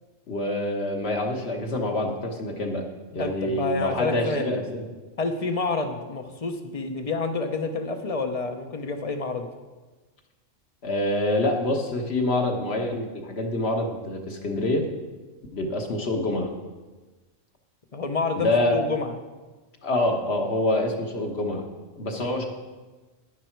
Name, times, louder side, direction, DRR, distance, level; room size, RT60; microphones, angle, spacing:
voice 1, 0.3-2.9 3.1-4.8 10.8-14.9 15.5-16.5 18.3-18.8 19.8-21.6 22.0-22.4, left 1 dB, 55° left, 2 dB, 1.5 m, -26 dB
voice 2, 3.2-4.5 5.2-9.5 17.9-19.1, left 3 dB, 35° left, 6 dB, 0.8 m, -28 dB
10.5 x 10.0 x 4.6 m, 1.3 s
omnidirectional pair, 1.3 m